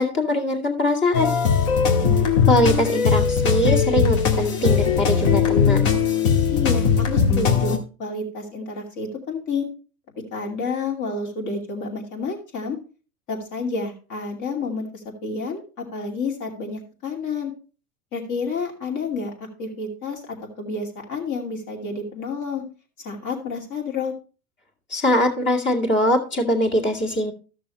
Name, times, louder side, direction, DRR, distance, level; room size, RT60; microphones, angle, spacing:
voice 1, 0.0-1.3 2.5-5.9 24.9-27.3, left 1 dB, 25° left, 0 dB, 2.3 m, -22 dB
sound 1, 1.1-7.8, left 6 dB, 60° left, 1.9 m, -19 dB
voice 2, 6.5-7.7 8.0-9.7 10.3-12.8 13.3-17.5 18.1-19.3 19.6-22.6 23.0-24.1, left 4 dB, 45° left, 2 dB, 2.7 m, -29 dB
14.0 x 6.3 x 3.1 m, 0.36 s
hypercardioid pair, 90°, 42 cm